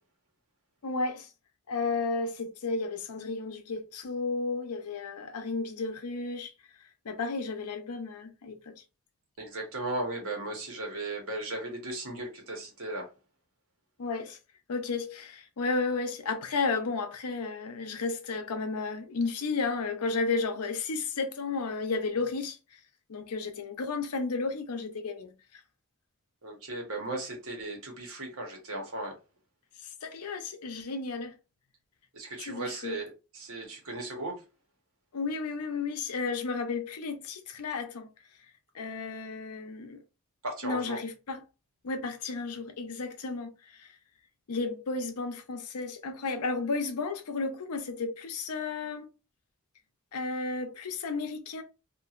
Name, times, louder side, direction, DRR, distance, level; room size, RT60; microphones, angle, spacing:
voice 1, 0.8-1.3 1.7-6.5 7.0-8.7 14.0-14.4 14.7-22.8 23.1-25.6 29.8-31.4 32.4-33.0 35.1-38.1 38.7-40.0 40.6-41.4 41.8-43.9 44.5-49.1 50.1-51.6, left 4 dB, 90° left, 0.6 m, -33 dB
voice 2, 9.4-13.1 26.4-29.2 32.1-34.4 40.4-41.0, right 2 dB, 70° right, 1.1 m, -36 dB
2.8 x 2.5 x 2.4 m
head